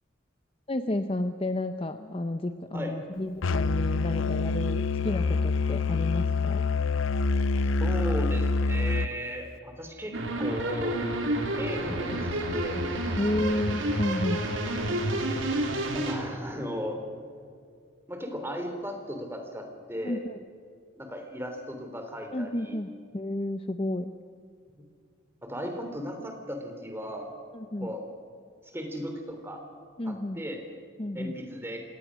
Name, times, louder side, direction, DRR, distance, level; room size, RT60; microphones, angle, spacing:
voice 1, 0.7-6.7 13.2-14.5 20.0-20.4 22.3-24.1 27.5-27.9 30.0-30.4 31.0-31.4, left 1 dB, 30° left, 9 dB, 0.6 m, -31 dB
Musical instrument, 3.4-9.1, left 4 dB, 80° left, 0.6 m, -26 dB
voice 2, 7.8-10.1 10.4-11.0 11.6-12.8 15.9-17.0 18.1-20.2 21.0-22.8 25.4-27.3 27.8-28.0 28.7-29.6 30.0-30.6 31.1-31.8, equal, 10° right, 4 dB, 3.1 m, -36 dB
sound 1, 10.1-16.1, right 1 dB, 75° right, 3.3 m, -29 dB
25.5 x 18.5 x 6.3 m, 2.2 s
head